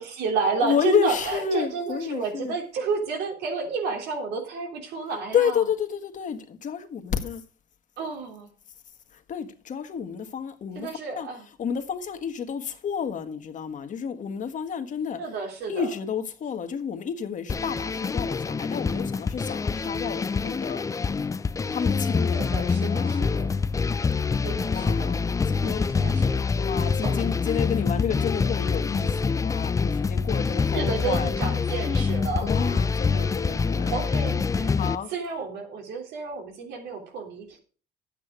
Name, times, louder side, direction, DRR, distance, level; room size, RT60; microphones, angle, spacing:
voice 1, 0.0-5.6 8.0-8.5 10.7-11.4 15.2-15.9 22.3-23.6 24.4-25.2 25.6-26.5 27.0-27.3 30.7-32.6 33.1-33.2 33.7-37.6, right 5 dB, 80° right, 3.4 m, -31 dB
voice 2, 0.6-2.5 5.3-7.4 9.1-15.3 15.7-21.4 21.7-23.5 24.7-25.9 26.6-31.8 32.4-34.0 34.8-35.1, left 7 dB, 50° left, 1.6 m, -30 dB
sound 1, 17.5-35.0, left 5 dB, 20° left, 0.5 m, -26 dB
10.5 x 8.7 x 5.0 m
cardioid pair, 110°, 17 cm